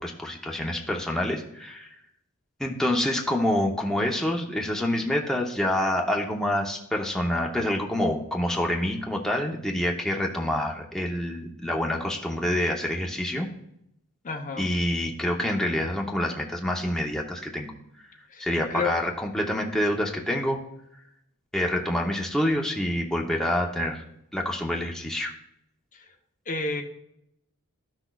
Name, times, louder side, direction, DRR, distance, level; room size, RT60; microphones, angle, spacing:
voice 1, 0.0-1.9 2.6-13.5 14.6-17.7 18.0-18.1 18.4-20.6 21.5-24.0 24.3-25.3, left 1 dB, 5° left, 0 dB, 0.7 m, -27 dB
voice 2, 14.2-14.7 18.3-18.4 18.7-19.0 25.9-26.0 26.5-26.8, left 3 dB, 40° left, 4 dB, 0.7 m, -30 dB
13.0 x 6.0 x 2.3 m, 0.79 s
head